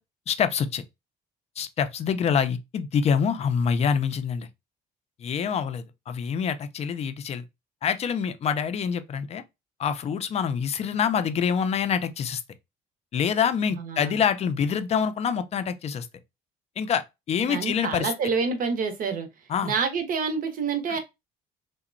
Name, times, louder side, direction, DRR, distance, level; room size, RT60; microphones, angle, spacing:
voice 1, 0.3-0.8 1.6-4.5 5.2-7.4 7.8-9.4 9.8-12.4 13.1-16.1 16.8-18.1 19.5-19.7 20.9-21.0, left 7 dB, 40° left, 0.4 m, -26 dB
voice 2, 13.7-14.2 17.5-19.3 19.6-21.0, right 5 dB, 55° right, 0.7 m, -27 dB
2.8 x 2.1 x 2.4 m
cardioid pair, 110°, 17 cm